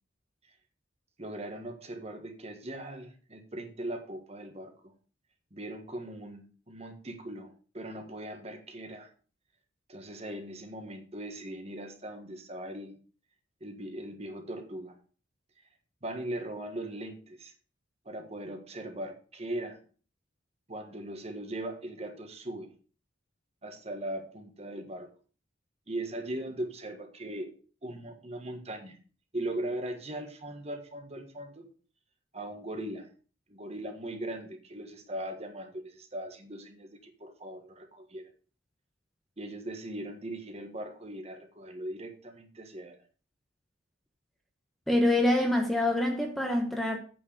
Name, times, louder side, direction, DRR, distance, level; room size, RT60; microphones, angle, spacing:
voice 1, 1.2-4.9 5.5-9.1 9.9-12.9 13.6-14.9 16.0-17.5 18.0-19.8 20.7-22.7 23.6-25.1 25.9-27.5 27.8-29.0 29.3-31.7 32.3-33.1 33.5-38.3 39.4-43.0, right 1 dB, 35° right, 1.4 m, -39 dB
voice 2, 44.9-47.0, left 1 dB, ahead, 0.9 m, -25 dB
8.9 x 4.6 x 6.7 m
head